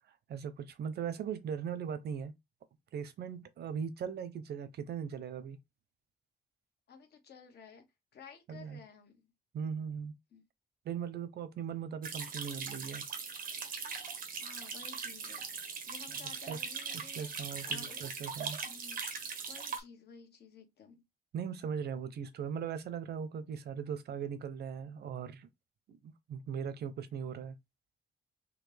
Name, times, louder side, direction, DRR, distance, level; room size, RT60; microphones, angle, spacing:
voice 1, 0.3-2.3 2.9-5.6 8.5-8.8 9.5-10.1 10.8-13.0 16.5-16.6 17.0-18.6 21.3-25.5 25.9-27.5, right 7 dB, 85° right, 0.7 m, -39 dB
voice 2, 6.9-9.3 10.3-10.4 14.4-18.0 18.6-19.0 19.5-21.0, left 5 dB, 90° left, 1.2 m, -54 dB
sound 1, 12.0-19.8, right 5 dB, 60° right, 1.0 m, -40 dB
4.1 x 2.8 x 3.4 m
wide cardioid pair, 160°, 17 cm